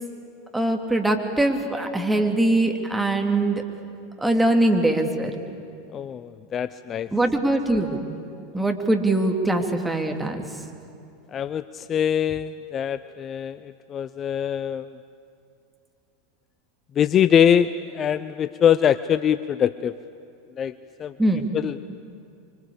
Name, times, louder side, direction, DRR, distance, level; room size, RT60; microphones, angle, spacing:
voice 1, 0.5-3.6 4.2-5.3 7.1-8.0 8.5-10.4 21.2-21.5, right 1 dB, 5° right, 3 dB, 2.8 m, -22 dB
voice 2, 5.9-7.1 11.3-13.6 13.9-14.9 17.0-19.9 20.6-20.7 21.0-21.1 21.5-21.8, left 9 dB, 30° left, 14 dB, 0.6 m, -23 dB
25.5 x 24.5 x 8.5 m, 2.5 s
figure-of-eight pair, 85°, 0 cm